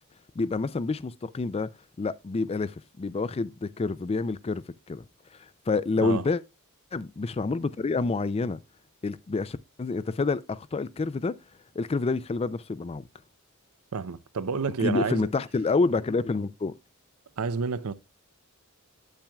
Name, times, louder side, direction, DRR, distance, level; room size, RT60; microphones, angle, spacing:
voice 1, 0.4-1.7 2.0-5.0 5.7-6.4 6.9-8.6 9.0-11.3 11.8-13.1 14.8-16.7, left 3 dB, 25° left, 0.4 m, -28 dB
voice 2, 13.9-15.3 17.4-17.9, right 5 dB, 70° right, 0.6 m, -29 dB
8.8 x 8.6 x 2.3 m
head